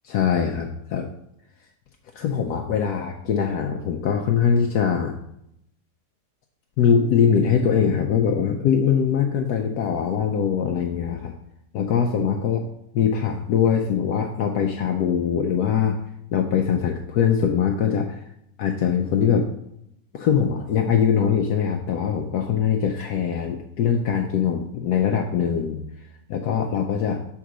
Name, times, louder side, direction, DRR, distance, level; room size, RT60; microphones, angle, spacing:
voice 1, 0.0-1.1 2.2-5.1 6.8-11.3 11.7-12.6 12.9-16.0 16.3-18.2 18.6-19.5 20.1-25.8 26.3-27.2, left 7 dB, 75° left, 2 dB, 1.1 m, -22 dB
5.9 x 3.6 x 6.0 m, 0.79 s
omnidirectional pair, 1.8 m